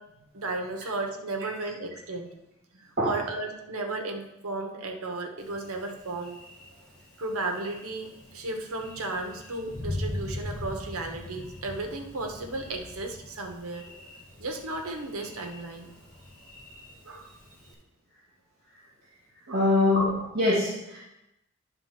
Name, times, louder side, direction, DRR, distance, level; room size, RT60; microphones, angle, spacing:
voice 1, 0.1-2.3 2.8-6.4 7.2-13.8 14.4-15.9 17.0-17.4 19.5-19.7, right 2 dB, 80° right, 4 dB, 1.2 m, -34 dB
Thunder, 5.4-17.7, left 1 dB, 5° left, 2.0 m, -41 dB
voice 2, 19.5-21.0, left 2 dB, 45° right, -6 dB, 2.0 m, -24 dB
10.0 x 3.9 x 5.8 m, 0.89 s
head